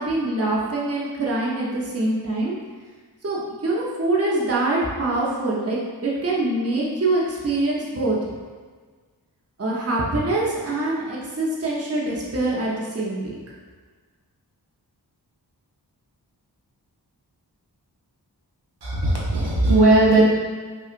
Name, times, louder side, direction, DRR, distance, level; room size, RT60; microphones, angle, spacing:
voice 1, 0.0-2.6 3.2-8.2 9.6-13.4, right 2 dB, 35° right, -5 dB, 0.8 m, -24 dB
voice 2, 18.8-20.2, right 2 dB, 75° right, -5 dB, 0.9 m, -17 dB
5.7 x 2.4 x 2.5 m, 1.5 s
wide cardioid pair, 55°, 40 cm